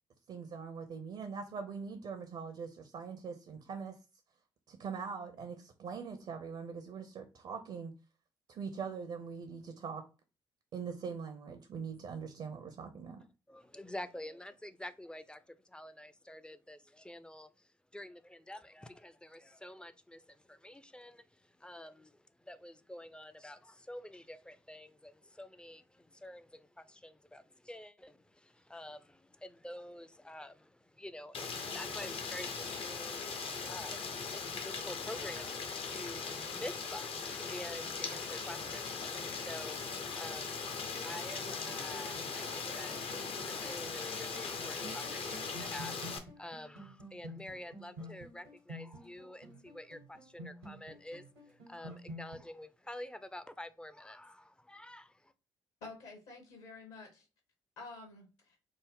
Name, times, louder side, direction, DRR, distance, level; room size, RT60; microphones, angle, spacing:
voice 1, 0.3-4.0 4.7-7.9 8.5-10.1 10.7-13.2, right 5 dB, 50° right, 0.6 m, -42 dB
voice 2, 13.5-33.2 33.7-55.3, left 1 dB, 5° left, 0.4 m, -48 dB
Rain, 31.3-46.2, left 5 dB, 50° left, 0.6 m, -39 dB
sound 1, 40.9-52.4, equal, 85° right, 1.1 m, -50 dB
voice 3, 55.8-57.3 57.8-58.6, left 3 dB, 70° left, 1.3 m, -49 dB
3.5 x 2.0 x 3.5 m
hypercardioid pair, 45°, 12 cm